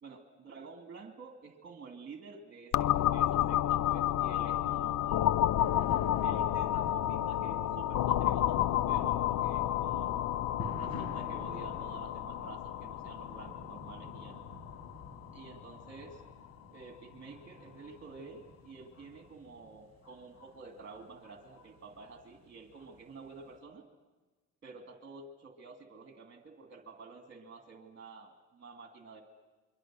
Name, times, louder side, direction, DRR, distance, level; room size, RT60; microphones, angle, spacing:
voice 1, 0.0-5.4 6.2-14.4 15.3-16.2 16.7-23.9 24.6-29.2, right 4 dB, 40° right, 3 dB, 2.5 m, -50 dB
sound 1, 2.7-16.3, left 12 dB, 75° left, 0.7 m, -31 dB
sound 2, 5.6-23.6, left 2 dB, 60° left, 6.0 m, -49 dB
28.5 x 23.5 x 6.2 m, 1.2 s
cardioid pair, 90°, 30 cm